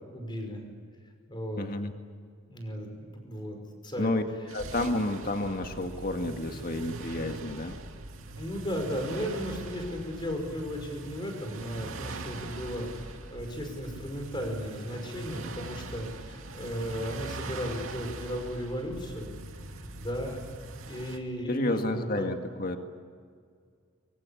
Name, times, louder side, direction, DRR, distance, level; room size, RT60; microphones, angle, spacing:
voice 1, 0.1-0.6 1.3-1.6 2.4-3.6 3.8-4.1 8.4-19.3 20.0-20.4 20.9-22.3, equal, 20° left, 4 dB, 5.4 m, -35 dB
voice 2, 1.6-1.9 4.0-4.2 4.5-7.8 21.5-22.8, left 1 dB, 45° left, 5 dB, 1.9 m, -30 dB
sound 1, 4.5-21.2, right 2 dB, 80° right, 2.5 m, -42 dB
24.0 x 23.5 x 8.5 m, 2.1 s
head